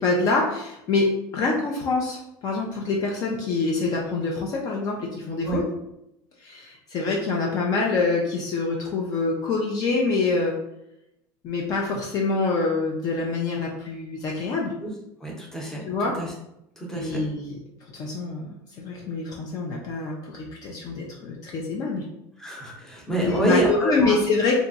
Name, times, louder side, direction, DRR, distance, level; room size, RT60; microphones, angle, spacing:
voice 1, 0.0-5.7 6.4-10.6 11.4-14.7 15.9-16.2 16.9-17.6 17.9-22.0 23.2-24.6, left 3 dB, 40° left, -1 dB, 0.4 m, -25 dB
voice 2, 15.2-15.8 16.1-16.3 16.8-17.2 22.4-24.1, right 1 dB, 5° left, -3 dB, 0.7 m, -27 dB
2.8 x 2.5 x 2.5 m, 0.85 s
cardioid pair, 145°, 10 cm